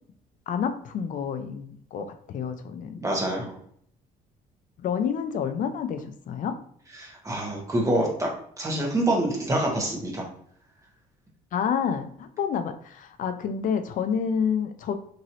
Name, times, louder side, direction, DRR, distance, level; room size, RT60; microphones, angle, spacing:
voice 1, 0.5-3.0 4.8-6.5 11.5-14.9, left 7 dB, 50° left, 8 dB, 0.5 m, -29 dB
voice 2, 3.0-3.6 7.0-8.3 8.6-10.3, right 1 dB, 20° right, -1 dB, 1.1 m, -26 dB
3.0 x 2.7 x 2.7 m, 0.63 s
cardioid pair, 110°, 17 cm